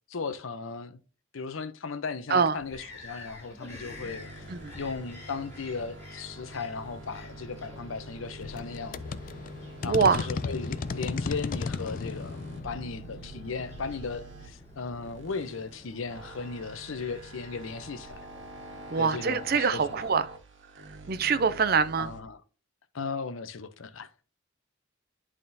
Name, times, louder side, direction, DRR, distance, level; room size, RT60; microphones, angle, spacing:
voice 1, 0.1-1.0 1.3-9.0 9.8-18.2 19.0-20.0 22.0-22.4 22.9-24.1, left 4 dB, 80° left, 0.6 m, -36 dB
Bird vocalization bird call bird song, 2.5-20.2, left 2 dB, 15° left, 3.3 m, -51 dB
sound 1, 3.9-22.2, right 2 dB, 65° right, 1.2 m, -46 dB
sound 2, 8.4-14.9, left 4 dB, 40° left, 0.3 m, -36 dB
voice 2, 9.8-10.3 18.9-20.3 21.1-22.1, right 5 dB, 50° right, 0.5 m, -24 dB
10.5 x 3.6 x 2.6 m
head